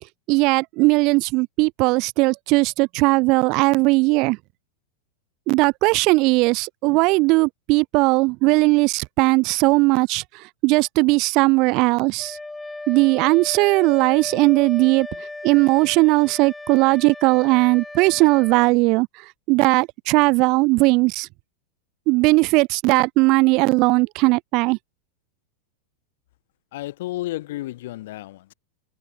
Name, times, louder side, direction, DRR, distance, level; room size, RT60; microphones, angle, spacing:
voice 1, 0.3-4.4 5.5-10.2 10.6-12.4 12.9-15.1 15.4-19.1 19.5-21.3 22.1-24.8, right 25 dB, 40° right, 0.4 m, -18 dB
Wind instrument woodwind instrument, 12.2-18.7, left 2 dB, 5° left, 2.8 m, -36 dB
voice 2, 26.7-28.5, left 16 dB, 55° left, 5.3 m, -32 dB
figure-of-eight pair, 90°, 0 cm